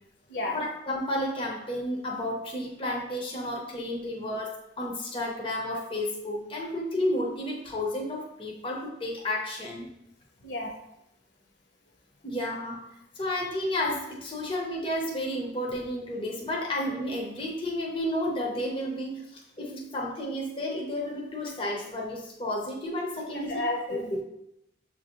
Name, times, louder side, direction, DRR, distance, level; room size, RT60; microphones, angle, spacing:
voice 1, 0.5-9.9 12.2-12.8 13.2-23.6 23.9-24.0, left 1 dB, 30° left, -2 dB, 0.5 m, -32 dB
voice 2, 23.3-24.2, left 2 dB, 75° left, 1 dB, 0.8 m, -31 dB
6.7 x 2.5 x 2.8 m, 0.84 s
head